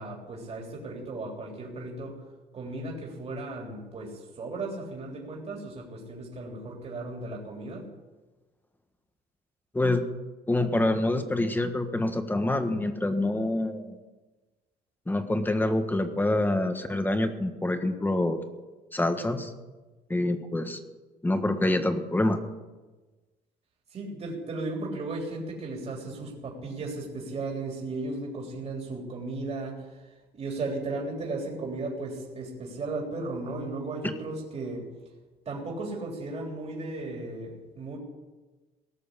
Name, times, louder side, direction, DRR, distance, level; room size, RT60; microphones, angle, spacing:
voice 1, 0.0-2.2 2.5-7.9 23.9-34.9 35.4-38.0, right 2 dB, 40° right, -1 dB, 3.5 m, -35 dB
voice 2, 10.5-14.0 15.1-18.4 18.9-19.5 20.1-20.8 21.2-22.4, left 1 dB, 10° left, 7 dB, 1.5 m, -26 dB
18.0 x 6.7 x 10.0 m, 1.2 s
cardioid pair, 110°, 17 cm